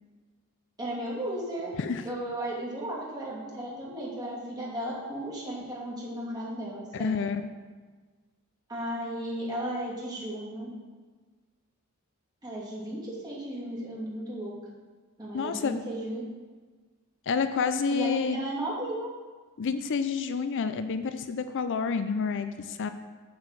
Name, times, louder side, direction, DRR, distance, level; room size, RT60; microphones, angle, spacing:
voice 1, 0.8-1.7 2.0-7.2 8.7-10.7 12.4-14.5 15.2-16.2 17.9-19.1, right 1 dB, 20° right, -6 dB, 2.7 m, -35 dB
voice 2, 6.9-7.4 15.3-15.8 17.3-18.4 19.6-22.9, left 5 dB, 60° left, 10 dB, 0.5 m, -29 dB
9.2 x 4.8 x 7.6 m, 1.4 s
head